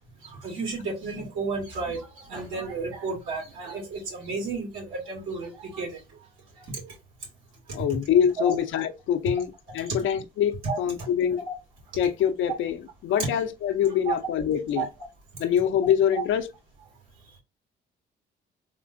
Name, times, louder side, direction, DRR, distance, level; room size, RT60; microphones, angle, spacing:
voice 1, 0.4-6.0 8.4-8.6 10.6-10.8 11.5-11.6 14.1-14.2 14.8-14.9, right 3 dB, 85° right, 2.3 m, -32 dB
voice 2, 7.7-11.4 12.0-14.9 15.4-16.5, left 9 dB, 75° left, 0.6 m, -25 dB
3.7 x 3.2 x 2.5 m
cardioid pair, 90°, 20 cm